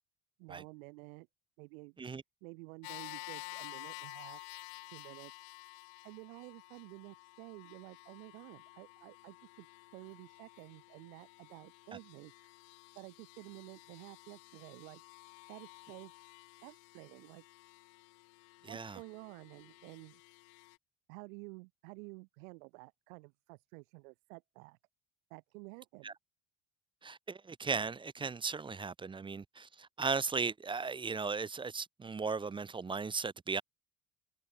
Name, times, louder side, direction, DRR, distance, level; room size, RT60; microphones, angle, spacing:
voice 1, 0.4-1.3 1.6-2.0 2.4-4.4 4.9-5.3 6.0-9.7 9.9-12.6 12.9-16.1 16.6-17.4 18.6-20.2 21.1-24.8 25.3-26.2, right 30 dB, 85° right, 1.0 m, -51 dB
sound 1, 2.8-20.8, left 37 dB, 80° left, 1.9 m, -52 dB
voice 2, 18.6-19.0 26.0-26.1 27.0-33.6, right 4 dB, 15° right, 0.4 m, -37 dB
supercardioid pair, 95°, 39 cm